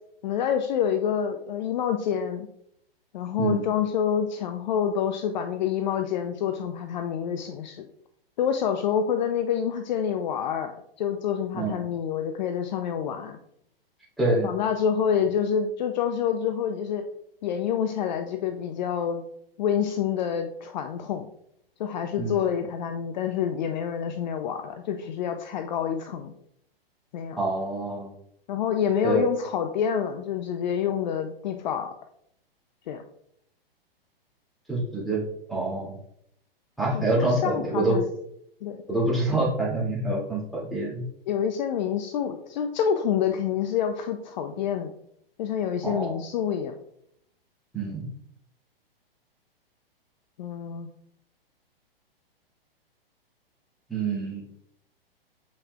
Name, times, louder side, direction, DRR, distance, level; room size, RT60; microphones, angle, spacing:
voice 1, 0.2-2.5 3.1-7.8 8.4-13.4 14.4-17.0 17.4-19.2 19.6-21.3 21.8-26.3 27.1-27.4 28.5-31.9 32.9-33.0 36.9-38.1 38.6-38.8 41.3-44.9 45.4-46.7 50.4-50.9, left 8 dB, 50° left, 7 dB, 0.6 m, -27 dB
voice 2, 14.2-14.5 22.2-22.3 27.4-28.1 29.0-29.2 34.7-35.2 35.5-35.9 36.8-38.0 38.9-41.0 45.8-46.2 47.7-48.0 53.9-54.4, right 2 dB, ahead, -5 dB, 2.6 m, -26 dB
7.6 x 5.7 x 2.4 m, 0.72 s
figure-of-eight pair, 115°, 30 cm